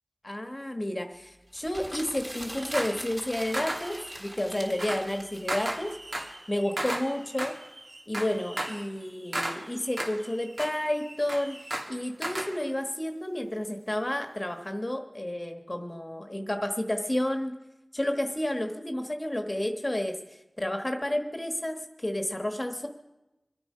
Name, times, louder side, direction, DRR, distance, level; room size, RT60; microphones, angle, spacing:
voice 1, 0.2-5.9 6.5-7.5 8.1-11.6 11.9-17.5 17.9-20.2 20.6-22.9, left 1 dB, 30° left, 5 dB, 1.3 m, -31 dB
sound 1, 1.5-6.2, equal, 20° right, 3.6 m, -43 dB
sound 2, 2.4-3.1 3.5-12.6, right 1 dB, 65° right, 2.0 m, -36 dB
25.5 x 9.0 x 5.5 m, 1.0 s
wide cardioid pair, 55°, 0 cm